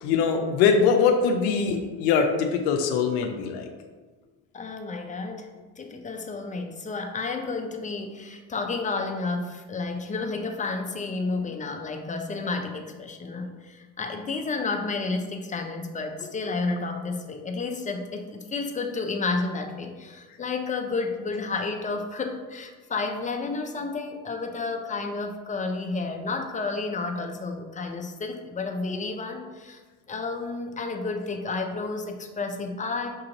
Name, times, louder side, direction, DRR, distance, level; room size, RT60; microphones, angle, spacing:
voice 1, 0.0-3.7, left 6 dB, 75° left, 4 dB, 0.6 m, -22 dB
voice 2, 4.5-5.5 5.8-29.8 30.1-33.1, left 3 dB, 20° left, 4 dB, 0.5 m, -31 dB
6.2 x 2.5 x 2.9 m, 1.3 s
supercardioid pair, 75°, 40 cm